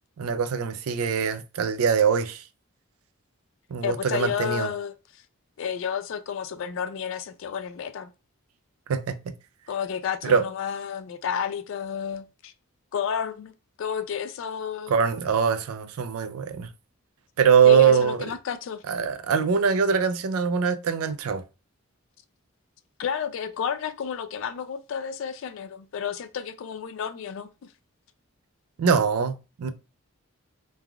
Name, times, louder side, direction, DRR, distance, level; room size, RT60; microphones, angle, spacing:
voice 1, 0.2-2.4 3.7-4.7 8.9-9.2 10.2-10.4 14.9-16.7 17.4-18.3 18.9-21.4 28.8-29.7, right 6 dB, 80° right, 0.4 m, -22 dB
voice 2, 3.8-5.2 5.6-8.1 9.7-12.5 12.9-13.5 13.8-14.9 17.6-18.8 23.0-27.5, left 7 dB, 60° left, 0.3 m, -31 dB
3.3 x 2.2 x 2.3 m
head